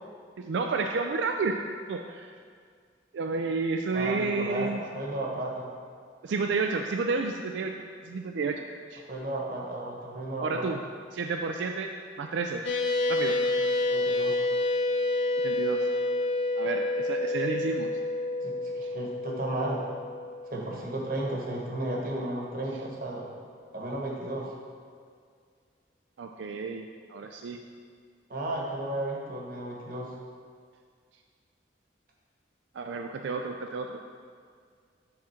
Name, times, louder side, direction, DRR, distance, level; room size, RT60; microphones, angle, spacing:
voice 1, 0.4-1.6 1.9-2.3 3.1-4.8 6.2-7.7 8.0-9.0 10.4-10.8 11.1-11.9 12.2-12.6 13.1-13.4 15.4-15.9 16.6-17.9 18.8-18.9 26.2-27.6 32.7-34.0, right 4 dB, 75° right, 4 dB, 0.4 m, -31 dB
voice 2, 3.9-5.7 9.1-10.7 13.9-14.4 18.4-19.9 20.5-23.3 23.7-24.5 28.3-30.1, right 1 dB, 50° right, -2 dB, 1.2 m, -34 dB
sound 1, 12.6-21.3, left 2 dB, 75° left, 0.6 m, -29 dB
7.7 x 3.7 x 5.7 m, 2.1 s
head